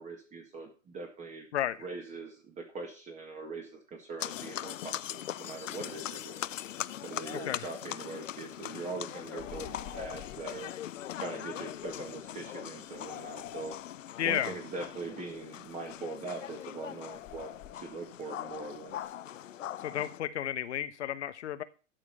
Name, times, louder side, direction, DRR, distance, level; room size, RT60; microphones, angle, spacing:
voice 1, 0.0-1.5 1.8-6.5 7.0-10.7 11.2-13.8 14.2-19.1, right 3 dB, 20° right, 2 dB, 1.8 m, -42 dB
sound 1, 4.2-20.2, left 11 dB, 80° left, 0.5 m, -41 dB
sound 2, 9.3-10.6 12.9-14.3 17.0-18.1, left 8 dB, 30° left, 2.3 m, -47 dB
voice 2, 14.2-14.5 19.8-21.6, left 11 dB, 60° left, 14 dB, 1.2 m, -32 dB
12.5 x 4.9 x 7.0 m, 0.35 s
hypercardioid pair, 120°, 38 cm